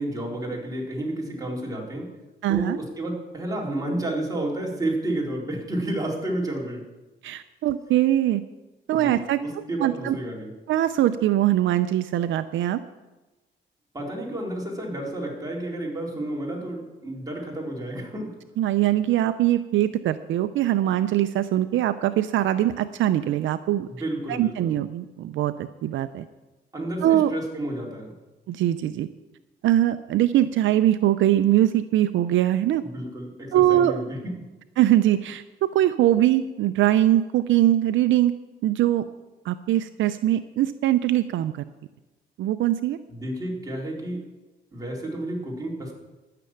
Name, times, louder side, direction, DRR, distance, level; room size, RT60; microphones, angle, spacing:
voice 1, 0.0-2.1 2.5-6.8 9.0-10.5 13.9-18.3 23.9-24.8 26.7-28.1 32.8-34.4 43.1-44.2 44.7-45.9, right 1 dB, 20° right, -3 dB, 4.2 m, -31 dB
voice 2, 2.4-2.8 7.2-8.4 8.9-9.4 9.8-10.2 10.7-12.8 18.6-23.9 24.3-26.3 27.0-27.3 28.5-29.1 29.6-32.8 33.5-34.0 34.8-38.3 38.6-39.0 39.4-41.6 42.4-43.0, right 13 dB, 75° right, 12 dB, 0.5 m, -22 dB
12.5 x 6.8 x 9.1 m, 1.1 s
cardioid pair, 90°, 20 cm